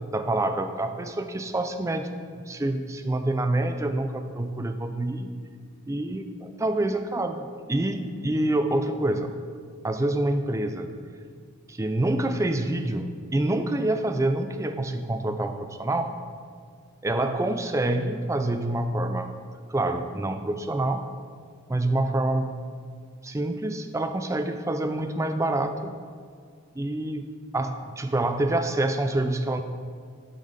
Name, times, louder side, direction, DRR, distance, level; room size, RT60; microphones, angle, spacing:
voice 1, 0.1-5.3 5.9-9.3 9.8-10.9 11.7-16.2 17.0-19.3 19.7-21.1 21.7-22.6 23.2-26.0 26.7-27.3 27.5-29.6, right 1 dB, 15° right, 8 dB, 0.3 m, -27 dB
7.4 x 5.6 x 5.1 m, 2.1 s
head